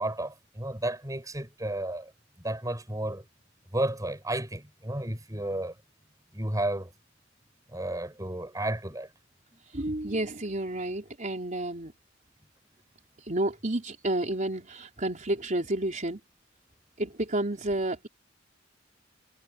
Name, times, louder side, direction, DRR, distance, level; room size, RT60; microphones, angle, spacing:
voice 1, 0.0-2.1 2.4-3.2 3.7-5.8 6.3-6.9 7.7-9.1, right 1 dB, 20° right, 7.6 m, -32 dB
voice 2, 9.7-11.9 13.2-16.2 17.0-18.1, right 1 dB, 40° right, 4.1 m, -30 dB
head